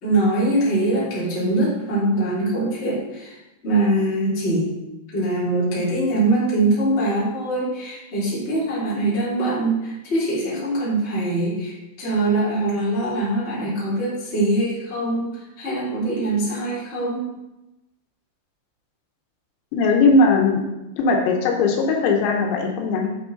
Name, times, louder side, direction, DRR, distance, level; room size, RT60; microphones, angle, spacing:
voice 1, 0.0-3.4 3.6-4.7 5.1-17.2, right 2 dB, 20° left, -9 dB, 1.9 m, -23 dB
voice 2, 19.7-20.6 21.0-23.1, left 3 dB, 85° left, 2 dB, 3.7 m, -18 dB
7.5 x 6.6 x 3.8 m, 0.96 s
omnidirectional pair, 5.9 m